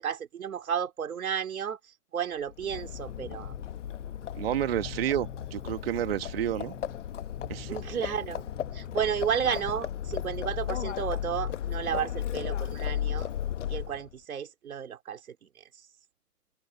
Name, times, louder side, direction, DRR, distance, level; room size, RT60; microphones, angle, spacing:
voice 1, 0.0-1.8 2.1-3.5 7.7-8.4 8.7-13.3 13.7-15.2, right 8 dB, 65° right, 3.4 m, -32 dB
Livestock farm animals working animals, 2.5-14.1, left 10 dB, 50° left, 1.1 m, -35 dB
sound 1, 2.9-11.6, equal, ahead, 7.4 m, -52 dB
voice 2, 4.3-6.7 7.5-7.8, right 12 dB, 40° right, 1.3 m, -30 dB
open air
hypercardioid pair, 155°, 46 cm